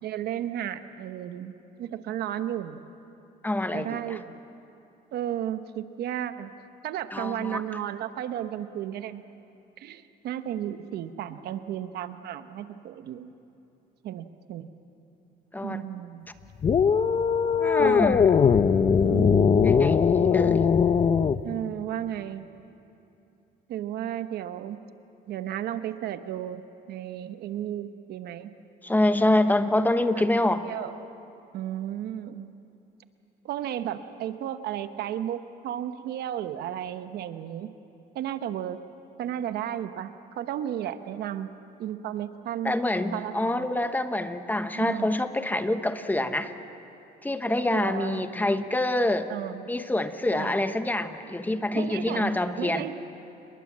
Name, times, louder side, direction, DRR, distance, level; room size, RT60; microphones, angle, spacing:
voice 1, 0.0-1.5 1.8-2.8 3.7-4.4 5.1-6.5 6.8-9.2 9.8-13.3 14.0-14.7 15.6-16.3 17.7-18.3 19.0-19.6 20.3-20.4 21.4-22.5 23.7-24.8 25.3-26.6 26.9-28.5 30.1-30.2 30.6-30.9 31.5-32.6 33.4-37.7 38.1-38.8 39.2-41.5 41.8-42.7 43.1-43.7 44.7-45.1 47.7-48.2 49.3-49.7 50.3-50.5 51.7-53.0, right 11 dB, 70° right, 10 dB, 1.0 m, -33 dB
voice 2, 3.4-4.2 7.1-7.6 15.5-15.8 17.6-18.4 19.6-20.6 28.8-30.6 42.6-46.5 47.2-49.3 49.7-52.9, left 1 dB, 10° left, 9 dB, 1.0 m, -26 dB
sound 1, 16.6-21.4, left 6 dB, 35° left, 0.7 m, -20 dB
28.0 x 21.5 x 7.4 m, 2.8 s
cardioid pair, 110°, 17 cm